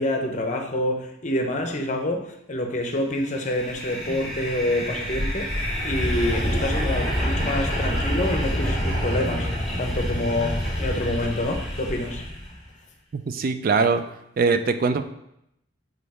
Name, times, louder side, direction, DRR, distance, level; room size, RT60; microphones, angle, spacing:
voice 1, 0.0-5.5 5.8-9.5 9.8-12.2, left 1 dB, 35° left, 4 dB, 0.7 m, -27 dB
sound 1, 3.3-12.5, equal, ahead, 2.3 m, -27 dB
voice 2, 13.1-14.0 14.4-15.0, right 4 dB, 45° right, 10 dB, 0.3 m, -22 dB
5.1 x 3.9 x 4.8 m, 0.79 s
head